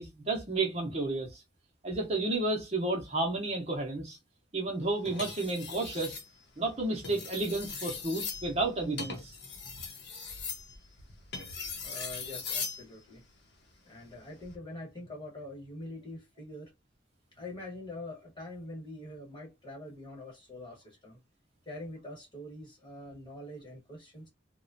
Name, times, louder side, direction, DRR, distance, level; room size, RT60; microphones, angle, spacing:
voice 1, 0.0-1.4 1.8-4.2 4.5-6.2 6.6-9.3, right 2 dB, 35° right, 0.6 m, -32 dB
sound 1, 5.1-6.3 6.9-12.8 14.3-14.6, left 5 dB, 65° left, 0.7 m, -40 dB
voice 2, 11.8-13.2 13.9-16.7 17.4-21.2 21.6-24.3, left 1 dB, 25° left, 1.2 m, -44 dB
2.9 x 2.1 x 2.5 m
head